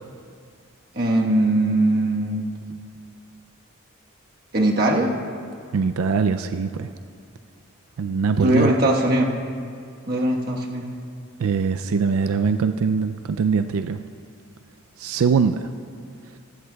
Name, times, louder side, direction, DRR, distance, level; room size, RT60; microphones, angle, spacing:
voice 1, 0.9-2.4 4.5-5.1 8.4-9.3 10.1-10.9, right 1 dB, 45° right, 0 dB, 1.3 m, -20 dB
voice 2, 5.7-6.9 8.0-8.7 11.4-14.0 15.0-15.7, right 5 dB, 90° right, 8 dB, 0.4 m, -22 dB
20.0 x 14.5 x 2.3 m, 2.3 s
head